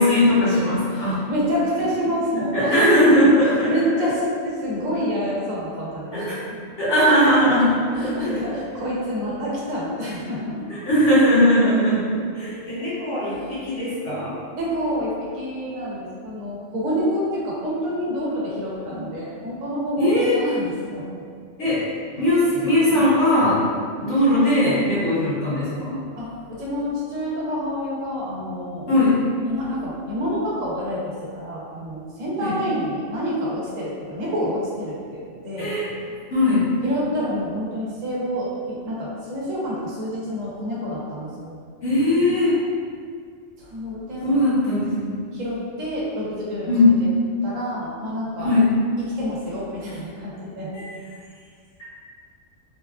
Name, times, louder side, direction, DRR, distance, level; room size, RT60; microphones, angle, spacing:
voice 1, 0.0-1.2 2.0-4.1 6.1-6.4 6.8-8.6 10.7-14.4 20.0-20.4 21.6-21.9 22.2-23.7 24.0-26.0 28.9-29.2 32.4-32.5 35.6-35.8 36.3-36.7 41.8-42.6 44.2-45.1 46.7-46.9 48.4-48.7, left 1 dB, 65° left, -10 dB, 1.3 m, -19 dB
voice 2, 0.9-3.3 3.7-6.3 7.6-10.6 13.3-13.6 14.6-21.1 22.9-23.0 24.3-24.4 26.2-28.9 29.4-35.7 36.8-41.6 43.6-44.4 45.3-46.7 47.4-48.5 49.0-50.7, equal, 80° right, -6 dB, 1.1 m, -28 dB
3.4 x 2.2 x 2.3 m, 2.1 s
omnidirectional pair, 1.3 m